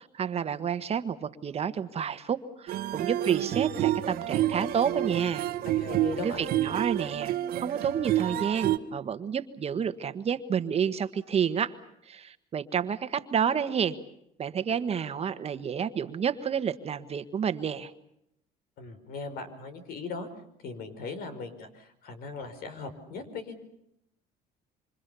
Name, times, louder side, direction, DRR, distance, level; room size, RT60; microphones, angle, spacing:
voice 1, 0.0-5.5 6.2-11.7 12.1-14.0 14.4-17.9, right 7 dB, 40° right, 10 dB, 1.4 m, -30 dB
sound 1, 2.7-8.8, right 13 dB, 65° right, 1.3 m, -29 dB
voice 2, 5.6-6.5 18.8-20.3 20.6-23.6, left 4 dB, 65° left, 9 dB, 5.1 m, -39 dB
26.0 x 26.0 x 7.0 m, 0.77 s
supercardioid pair, 100°, 17 cm